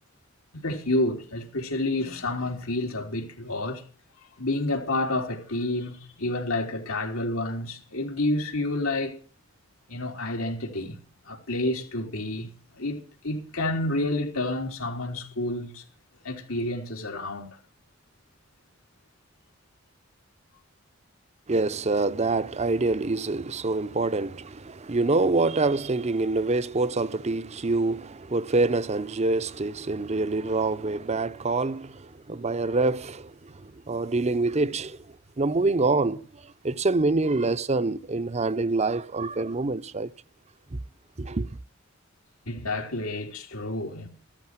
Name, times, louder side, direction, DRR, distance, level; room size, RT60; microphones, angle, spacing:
voice 1, 0.5-3.8 4.4-9.2 9.9-11.0 11.3-13.0 13.2-15.8 16.2-17.5 42.5-44.1, left 2 dB, 90° left, 3.8 m, -29 dB
voice 2, 21.5-35.0 35.4-40.1 40.7-40.8 41.2-41.5, right 3 dB, 30° right, 0.7 m, -26 dB
15.0 x 13.5 x 6.1 m
head